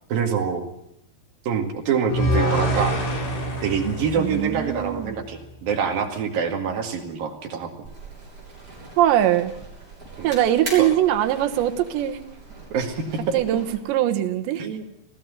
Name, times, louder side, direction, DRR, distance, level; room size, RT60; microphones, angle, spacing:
voice 1, 0.1-0.7 1.5-3.0 3.6-7.7 10.2-10.4 10.8-10.9 12.7-13.4 14.6-14.8, right 6 dB, 60° right, 4 dB, 3.7 m, -25 dB
sound 1, 2.1-5.3, equal, 70° left, 7.0 m, -26 dB
voice 2, 4.2-5.1 9.0-9.5 10.2-12.2 13.3-14.7, right 12 dB, 85° right, 8 dB, 3.5 m, -22 dB
sound 2, 7.8-13.8, right 2 dB, 20° right, 7.2 m, -40 dB
20.0 x 15.0 x 9.7 m, 0.77 s
omnidirectional pair, 5.0 m